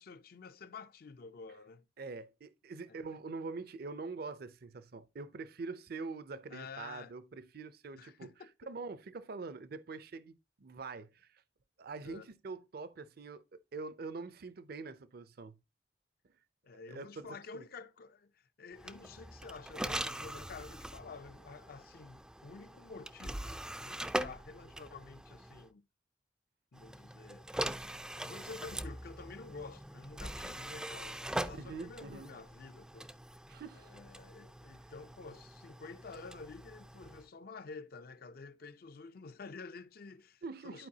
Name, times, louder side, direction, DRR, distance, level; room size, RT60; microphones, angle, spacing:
voice 1, 0.0-1.8 2.9-3.0 6.5-7.1 8.0-8.5 12.0-12.3 16.6-25.8 26.7-27.5 28.2-33.1 33.7-40.9, left 4 dB, 55° left, 0.5 m, -50 dB
voice 2, 2.0-8.3 8.7-11.4 11.8-13.4 13.7-15.6 16.9-17.6 31.5-32.3 33.5-33.9 40.4-40.9, right 4 dB, 60° right, 0.5 m, -44 dB
sound 1, 18.8-25.7 26.7-37.3, right 1 dB, 5° right, 0.3 m, -42 dB
11.0 x 4.6 x 2.7 m
head